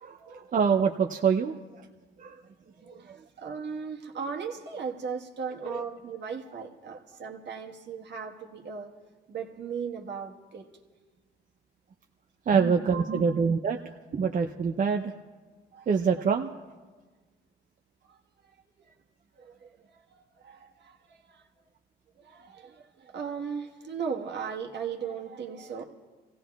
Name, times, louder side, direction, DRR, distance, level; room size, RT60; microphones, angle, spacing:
voice 1, 0.0-1.9 2.2-2.4 2.8-3.2 5.6-5.8 12.5-15.1 15.9-16.5, right 6 dB, 40° right, 4 dB, 0.5 m, -26 dB
voice 2, 3.0-8.9 9.3-10.7 12.5-13.4 14.1-14.3 15.7-15.9 18.1-18.5 19.4-20.0 20.4-21.4 22.2-25.8, right 6 dB, 60° right, 2 dB, 1.4 m, -37 dB
29.0 x 16.5 x 2.3 m, 1.4 s
cardioid pair, 90°, 20 cm